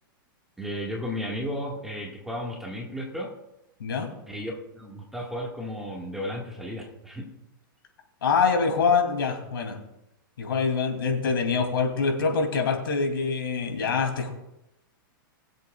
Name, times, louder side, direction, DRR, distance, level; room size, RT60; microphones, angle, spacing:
voice 1, 0.6-3.3 4.3-7.3, equal, ahead, -1 dB, 1.8 m, -34 dB
voice 2, 8.2-9.8 10.4-14.3, left 5 dB, 85° left, 2 dB, 2.9 m, -25 dB
20.5 x 7.8 x 2.4 m, 0.86 s
hypercardioid pair, 145°, 12 cm